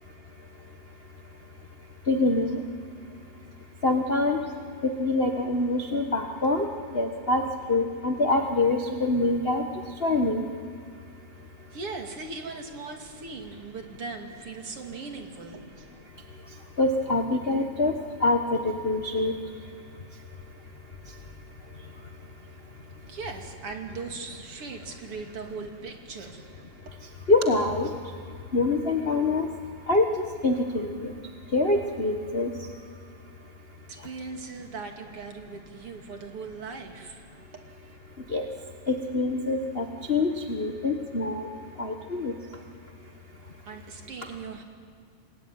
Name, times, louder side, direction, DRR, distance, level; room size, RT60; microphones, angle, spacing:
voice 1, 2.1-2.6 3.8-4.4 5.0-6.6 6.9-7.4 7.7-9.6 10.0-10.5 16.8-19.3 27.3-27.9 28.5-29.5 29.9-30.0 30.4-31.1 31.5-32.5 38.3-38.4 38.9-41.5 41.8-42.3, left 2 dB, 55° left, 3 dB, 0.6 m, -25 dB
voice 2, 11.7-15.8 22.2-22.4 22.7-27.1 33.9-38.0 43.7-44.6, right 4 dB, 50° right, 3 dB, 3.1 m, -39 dB
28.0 x 21.0 x 9.4 m, 2.2 s
omnidirectional pair, 3.4 m